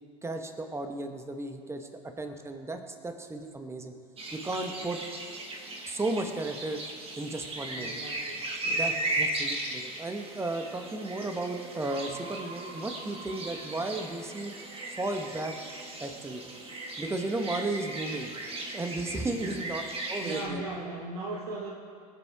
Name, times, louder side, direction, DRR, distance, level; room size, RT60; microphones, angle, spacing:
voice 1, 0.2-3.9 4.3-5.0 5.8-6.8 7.2-8.0 8.6-14.5 14.9-15.6 16.0-16.5 17.0-18.3 18.7-19.8 20.1-20.6, right 2 dB, 15° right, 5 dB, 1.5 m, -34 dB
sound 1, 4.2-20.5, right 2 dB, 30° right, 2.2 m, -37 dB
voice 2, 7.8-9.2 19.4-19.6 20.2-21.7, right 2 dB, 70° right, -4 dB, 1.9 m, -39 dB
sound 2, 11.9-14.5, right 3 dB, 55° right, 1.7 m, -47 dB
24.5 x 8.6 x 3.7 m, 2.2 s
figure-of-eight pair, 75°, 20 cm